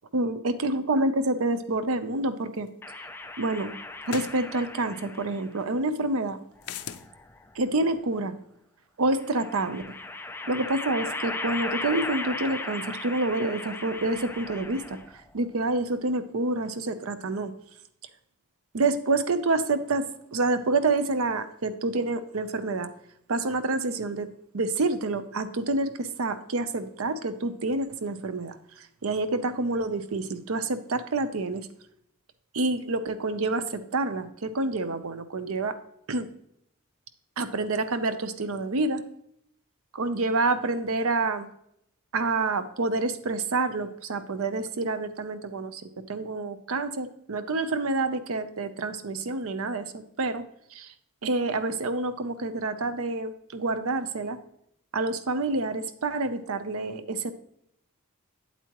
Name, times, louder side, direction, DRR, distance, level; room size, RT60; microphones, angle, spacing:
voice 1, 0.1-2.7 3.4-3.7 4.1-6.4 7.6-8.3 9.0-9.8 10.5-15.0 15.3-17.5 18.7-22.9 23.3-24.3 24.5-31.7 32.5-35.8 36.1-36.3 37.4-39.0 39.9-41.5 42.1-50.4 50.7-50.9 51.2-54.4 54.9-57.3, right 2 dB, 70° right, 11 dB, 0.6 m, -28 dB
sound 1, 2.7-2.8 4.1-4.4 6.6-7.1, left 8 dB, 80° left, 0.5 m, -36 dB
sound 2, 2.8-5.5 6.6-7.6 9.2-15.2, left 2 dB, 10° left, 0.4 m, -37 dB
8.3 x 8.2 x 3.0 m, 0.74 s
head